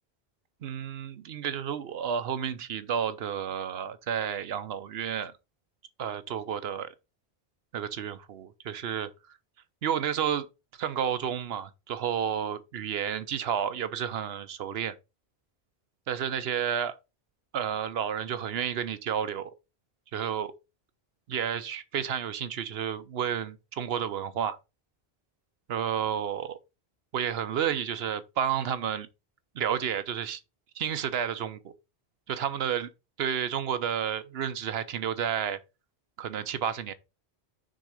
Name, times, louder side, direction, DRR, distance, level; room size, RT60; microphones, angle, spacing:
voice 1, 0.6-5.3 6.0-6.9 7.7-9.1 9.8-10.5 10.8-14.9 16.1-16.9 17.5-19.5 20.1-20.5 21.3-24.6 25.7-26.6 27.1-29.1 29.5-30.4 30.7-31.7 32.3-32.9 33.2-35.6 36.2-36.9, right 8 dB, 70° right, 0.9 m, -31 dB
6.3 x 3.9 x 4.9 m
omnidirectional pair, 1.1 m